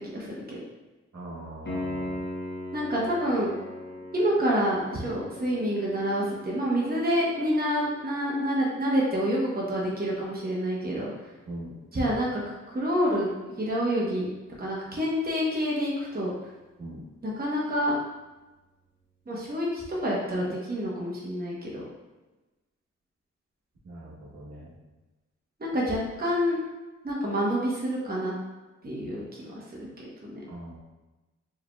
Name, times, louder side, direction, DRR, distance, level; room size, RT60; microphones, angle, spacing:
voice 1, 0.1-0.6 2.7-3.5 4.1-11.1 11.9-13.3 13.6-14.3 14.6-16.3 17.2-17.9 19.3-21.8 25.6-26.6 27.0-28.3 28.8-29.6 30.0-30.4, equal, 30° right, -5 dB, 0.9 m, -28 dB
voice 2, 1.1-2.3 11.5-11.8 16.8-17.0 23.8-24.7 30.5-30.8, right 1 dB, 65° right, -6 dB, 1.1 m, -41 dB
Piano, 1.6-12.3 15.6-15.7, left 1 dB, 35° left, 1.0 m, -41 dB
4.6 x 3.1 x 2.3 m, 1.1 s
cardioid pair, 65°, 31 cm